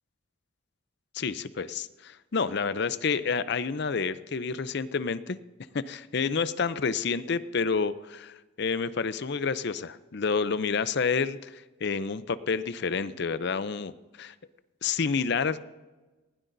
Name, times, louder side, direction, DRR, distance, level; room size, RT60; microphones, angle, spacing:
voice 1, 1.1-5.4 5.7-13.9 14.2-14.3 14.8-15.6, left 5 dB, 55° left, 14 dB, 0.5 m, -29 dB
19.5 x 16.0 x 2.7 m, 1.2 s
head